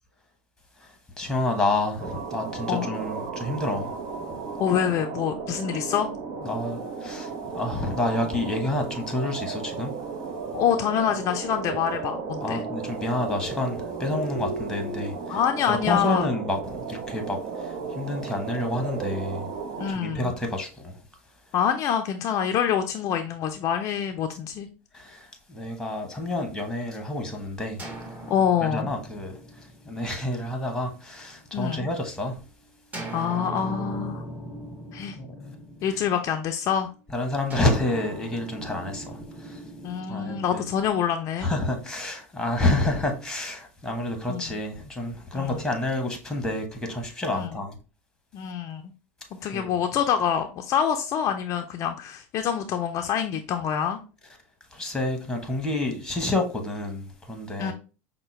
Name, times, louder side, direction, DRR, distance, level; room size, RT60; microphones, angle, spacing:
voice 1, 0.8-4.4 6.4-10.1 12.4-15.4 15.7-19.5 19.9-21.0 24.9-27.8 28.6-32.4 35.2-35.5 37.1-39.7 40.1-40.7 41.4-47.7 49.5-49.8 54.7-57.7, left 2 dB, 5° left, 1.1 m, -29 dB
sound 1, 2.0-19.9, right 5 dB, 55° right, 0.7 m, -34 dB
voice 2, 4.6-6.1 10.5-12.6 15.3-16.3 19.8-20.3 21.5-24.7 28.3-28.9 31.5-31.9 33.1-34.2 34.9-35.2 35.8-36.9 39.8-41.5 44.3-44.5 45.3-45.6 47.3-47.5 48.3-48.8 49.4-54.0 57.6-57.7, left 8 dB, 45° left, 0.4 m, -26 dB
sound 2, 27.8-31.6 32.9-36.5 37.5-41.6, right 1 dB, 20° right, 1.3 m, -40 dB
5.4 x 2.1 x 3.1 m
hypercardioid pair, 100°, 7 cm